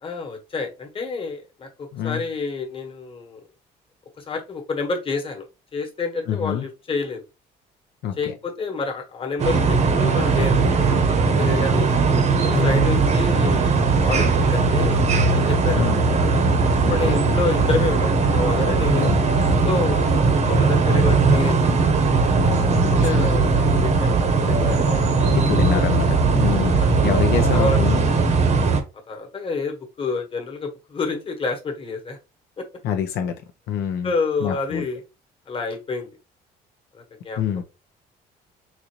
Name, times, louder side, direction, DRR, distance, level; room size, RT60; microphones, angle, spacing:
voice 1, 0.0-3.4 4.2-7.2 8.2-11.0 11.4-12.0 12.5-15.0 15.3-16.0 16.9-19.2 19.7-20.1 20.4-21.9 22.9-24.1 24.4-25.1 25.5-25.8 26.6-27.0 27.5-28.0 29.1-32.2 32.6-32.7 34.0-35.0 35.5-36.1 36.9-37.4, left 3 dB, 30° left, 1.3 m, -29 dB
voice 2, 6.3-6.7 8.0-8.3 12.5-12.9 15.7-16.0 16.8-17.2 18.9-19.2 22.7-23.3 25.3-26.1 26.3-28.1 32.8-33.4 33.7-34.1 34.4-34.8 37.4-37.6, left 8 dB, 75° left, 0.7 m, -26 dB
sound 1, 9.4-28.8, right 4 dB, 40° right, 0.9 m, -19 dB
4.2 x 2.5 x 3.0 m
cardioid pair, 110°, 17 cm